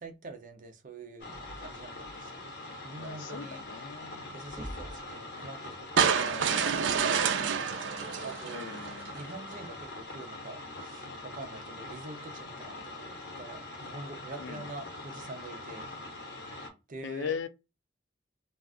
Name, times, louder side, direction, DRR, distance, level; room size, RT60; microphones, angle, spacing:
voice 1, 0.0-2.5 2.8-3.6 4.3-7.7 8.2-8.8 9.1-15.9 16.9-17.5, right 2 dB, 45° right, 0.6 m, -46 dB
sound 1, 1.2-16.7, left 2 dB, 65° left, 1.1 m, -43 dB
voice 2, 3.0-4.3 6.1-7.1 8.5-9.1 14.4-14.7 17.0-17.5, left 6 dB, 85° left, 0.4 m, -39 dB
sound 2, 4.4-5.1 6.8-6.9 8.8-8.9 9.8-9.9, equal, 20° left, 1.0 m, -43 dB
sound 3, 6.0-9.2, right 7 dB, 90° right, 0.4 m, -28 dB
2.4 x 2.3 x 3.6 m
head